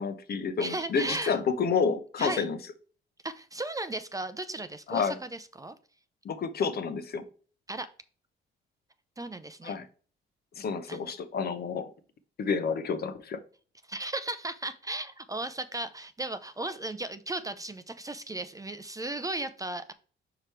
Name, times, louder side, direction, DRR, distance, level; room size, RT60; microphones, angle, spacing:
voice 1, 0.0-2.6 4.9-5.2 6.2-7.2 9.6-9.9 10.6-11.9 12.4-13.4, left 5 dB, 55° left, 0.8 m, -29 dB
voice 2, 0.6-1.4 2.2-2.5 3.2-5.8 7.7-7.9 9.2-9.8 10.9-11.1 13.8-19.9, right 2 dB, 15° right, 0.5 m, -36 dB
5.0 x 4.8 x 4.3 m
cardioid pair, 90°, 20 cm